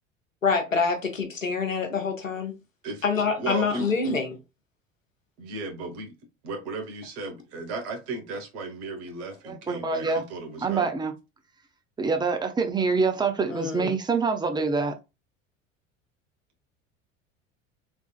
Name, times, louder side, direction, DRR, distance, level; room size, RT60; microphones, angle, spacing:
voice 1, 0.4-2.5 3.0-4.3 13.5-13.9, left 5 dB, 90° left, 0.8 m, -26 dB
voice 2, 3.4-3.9 5.4-6.2 6.4-10.9, right 3 dB, 55° right, 1.4 m, -35 dB
voice 3, 9.4-10.2 10.6-11.1 12.0-14.9, right 4 dB, 10° right, 0.6 m, -25 dB
3.4 x 3.4 x 2.4 m
figure-of-eight pair, 70°, 38 cm